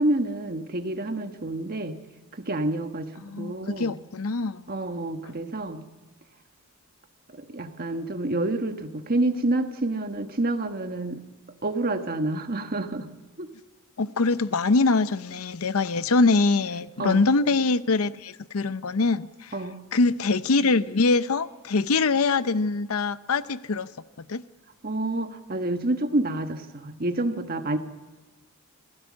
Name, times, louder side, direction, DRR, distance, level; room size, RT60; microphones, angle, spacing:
voice 1, 0.0-2.0 2.3-3.1 3.4-3.9 4.7-5.8 7.3-11.2 11.6-13.1 13.4-13.5 17.0-17.3 19.5-19.8 24.8-27.8, right 2 dB, 45° right, 1.4 m, -28 dB
voice 2, 3.2-4.6 5.2-5.3 14.0-19.6 19.9-23.9 24.3-24.4, left 3 dB, 70° left, 0.7 m, -23 dB
27.0 x 17.0 x 7.5 m
head